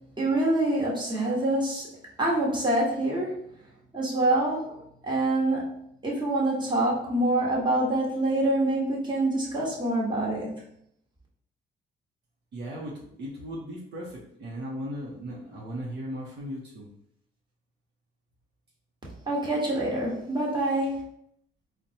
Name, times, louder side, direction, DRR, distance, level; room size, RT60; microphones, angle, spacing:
voice 1, 0.2-1.9 2.2-3.4 3.9-4.8 5.0-10.5 19.3-21.0, right 1 dB, 25° right, -4 dB, 1.3 m, -26 dB
voice 2, 12.5-16.9, equal, 60° right, -4 dB, 0.8 m, -37 dB
4.0 x 2.2 x 2.8 m, 0.71 s
cardioid pair, 90°, 20 cm